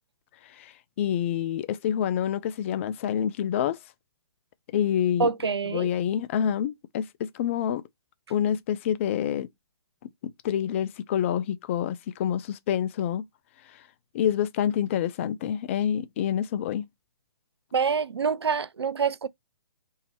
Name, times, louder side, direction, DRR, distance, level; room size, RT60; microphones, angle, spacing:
voice 1, 1.0-3.8 4.7-5.3 5.7-7.8 8.3-9.5 10.2-13.2 14.1-16.8, left 9 dB, 30° left, 0.3 m, -27 dB
voice 2, 5.2-5.9 17.7-19.3, right 5 dB, 80° right, 0.4 m, -26 dB
2.8 x 2.7 x 4.3 m
figure-of-eight pair, 130°, 13 cm